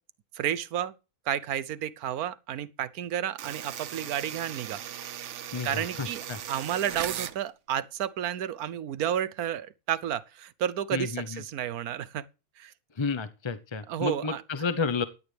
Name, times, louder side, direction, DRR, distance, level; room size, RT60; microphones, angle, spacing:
voice 1, 0.3-1.0 1.3-4.8 5.6-12.2 12.6-12.7 13.9-14.4, right 10 dB, 85° right, 1.3 m, -31 dB
sound 1, 3.4-7.4, right 10 dB, 60° right, 1.0 m, -38 dB
voice 2, 5.5-6.4 10.9-11.4 13.0-15.0, left 4 dB, 25° left, 0.6 m, -31 dB
16.0 x 10.5 x 3.4 m
omnidirectional pair, 1.5 m